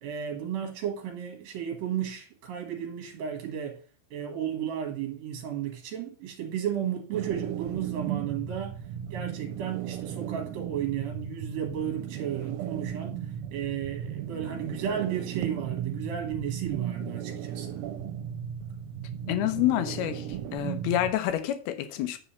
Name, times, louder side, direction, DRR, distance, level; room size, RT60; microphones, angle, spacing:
voice 1, 0.0-3.8 4.1-8.8 9.1-13.2 13.5-17.8, right 9 dB, 65° right, 2.7 m, -33 dB
sound 1, 7.1-21.1, right 10 dB, 85° right, 2.7 m, -36 dB
voice 2, 19.3-20.2 20.5-22.2, left 13 dB, 75° left, 2.7 m, -27 dB
9.8 x 3.7 x 7.1 m
omnidirectional pair, 4.8 m